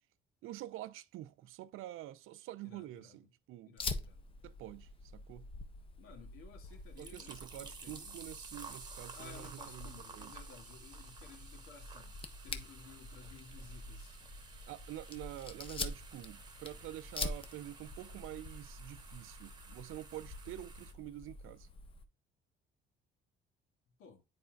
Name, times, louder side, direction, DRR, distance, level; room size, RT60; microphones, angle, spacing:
voice 1, 0.4-3.8 4.4-5.5 7.0-10.4 14.7-21.7, right 14 dB, 80° right, 0.6 m, -47 dB
voice 2, 2.6-3.3 3.6-4.4 6.0-8.2 9.1-12.2 12.4-14.2 24.0-24.2, left 6 dB, 85° left, 2.0 m, -56 dB
Fire, 3.8-22.0, left 3 dB, 25° left, 0.6 m, -46 dB
sound 1, 6.7-20.9, right 4 dB, 20° right, 1.0 m, -53 dB
9.5 x 4.3 x 2.3 m
cardioid pair, 165°, 21 cm